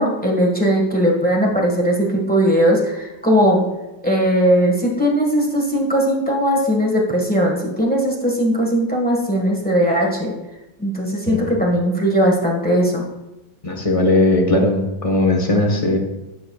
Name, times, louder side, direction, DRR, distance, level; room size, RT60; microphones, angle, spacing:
voice 1, 0.0-3.6 4.0-10.3 10.8-13.1, equal, 5° left, -1 dB, 1.2 m, -18 dB
voice 2, 13.6-16.0, left 2 dB, 25° left, 2 dB, 0.9 m, -18 dB
14.5 x 7.8 x 2.3 m, 1.0 s
omnidirectional pair, 2.0 m